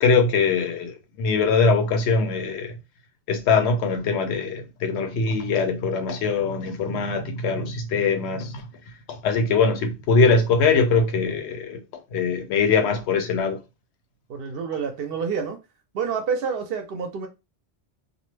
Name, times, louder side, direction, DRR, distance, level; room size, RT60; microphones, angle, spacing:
voice 1, 0.0-2.7 3.3-8.6 9.1-11.8 12.1-13.6, left 4 dB, 80° left, 0.9 m, -22 dB
voice 2, 14.3-15.6 15.9-17.3, right 6 dB, 65° right, 0.7 m, -28 dB
2.4 x 2.1 x 3.1 m
omnidirectional pair, 1.1 m